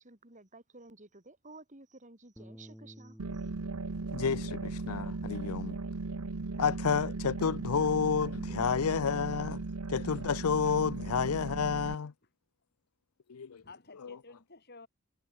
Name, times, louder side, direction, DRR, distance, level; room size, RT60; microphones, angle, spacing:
voice 1, 0.0-3.5, right 2 dB, 35° right, 3.0 m, -54 dB
Bass guitar, 2.4-8.6, equal, ahead, 1.4 m, -57 dB
sound 1, 3.2-11.9, right 3 dB, 85° right, 0.9 m, -37 dB
voice 2, 4.1-5.8 6.6-9.6 9.9-12.1 13.3-13.6 14.0-14.2, left 6 dB, 80° left, 0.6 m, -30 dB
voice 3, 13.6-14.9, left 3 dB, 45° left, 3.4 m, -53 dB
head